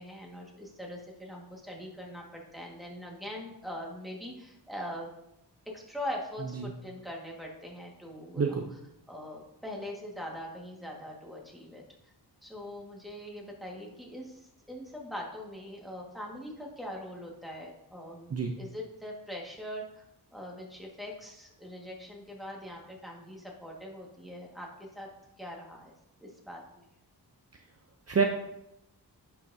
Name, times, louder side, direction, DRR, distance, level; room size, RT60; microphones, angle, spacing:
voice 1, 0.0-5.1 5.7-8.6 9.1-11.8 12.4-20.0 20.3-25.1 25.4-25.9 26.2-26.8, equal, ahead, -1 dB, 1.7 m, -42 dB
voice 2, 6.6-6.7 8.4-8.6 18.3-18.5 28.1-28.2, right 5 dB, 35° right, 3 dB, 0.7 m, -27 dB
10.0 x 5.7 x 2.7 m, 0.81 s
wide cardioid pair, 95°, 41 cm